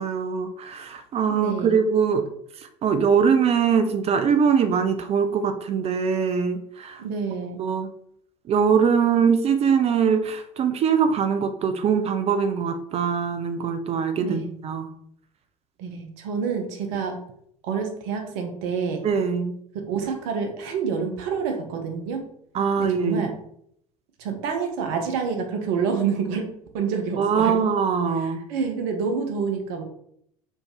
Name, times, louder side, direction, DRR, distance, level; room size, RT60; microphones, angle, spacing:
voice 1, 0.0-2.2 2.8-7.0 7.6-7.9 8.5-14.9 19.0-19.5 22.5-23.3 27.2-28.4, right 6 dB, 35° right, 9 dB, 0.5 m, -22 dB
voice 2, 1.3-1.8 7.0-7.6 14.2-14.5 15.8-17.2 17.6-19.0 19.9-22.2 22.8-23.3 24.2-26.5 26.7-27.5 28.2-29.8, right 6 dB, 60° right, 4 dB, 0.9 m, -28 dB
4.4 x 3.2 x 3.0 m, 0.70 s
figure-of-eight pair, 65°, 19 cm